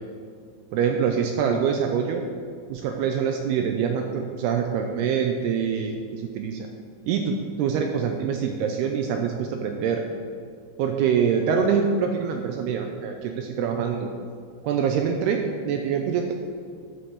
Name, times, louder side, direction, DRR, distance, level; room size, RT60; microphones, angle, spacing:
voice 1, 0.7-2.2 2.7-6.7 7.1-10.0 10.8-14.1 14.6-16.4, right 7 dB, 85° right, 4 dB, 2.4 m, -25 dB
11.5 x 6.0 x 6.7 m, 2.1 s
omnidirectional pair, 5.2 m